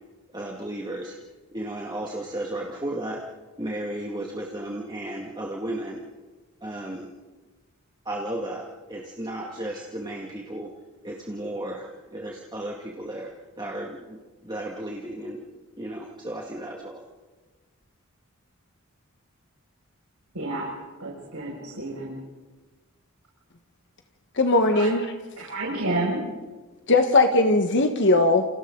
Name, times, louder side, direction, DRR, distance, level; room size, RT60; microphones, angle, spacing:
voice 1, 0.3-1.2 1.5-3.2 3.6-6.0 6.6-7.1 8.1-10.7 11.0-13.3 13.6-15.4 15.8-17.0, right 1 dB, 20° right, -2 dB, 2.3 m, -34 dB
voice 2, 20.3-20.7 21.0-22.2 24.7-24.9 25.4-26.2, right 2 dB, 90° right, -4 dB, 6.4 m, -30 dB
voice 3, 24.4-25.0 26.9-28.5, left 2 dB, 55° left, 5 dB, 1.5 m, -19 dB
29.5 x 29.0 x 4.0 m, 1.3 s
head